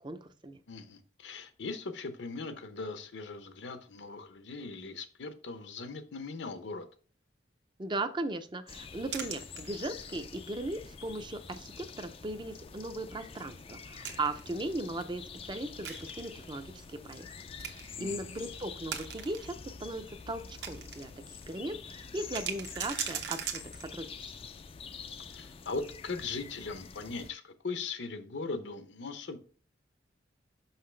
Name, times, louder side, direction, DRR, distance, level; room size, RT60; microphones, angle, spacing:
voice 1, 0.0-0.6 7.8-17.3 17.7-24.3, right 2 dB, 25° right, 10 dB, 0.5 m, -38 dB
voice 2, 0.7-6.9 18.0-18.6 25.3-29.4, left 4 dB, 70° left, 9 dB, 0.8 m, -39 dB
sound 1, 8.7-27.3, left 6 dB, 30° left, 0.3 m, -47 dB
sound 2, 9.1-10.1 10.5-10.6 11.1-11.3 11.6-11.7 13.3-14.6 15.8-16.6 17.2-17.3 17.6-18.0 18.7-19.5 20.0-21.1 21.4-21.5 22.1-24.1, right 8 dB, 60° right, 0.9 m, -39 dB
5.8 x 5.7 x 3.2 m, 0.41 s
head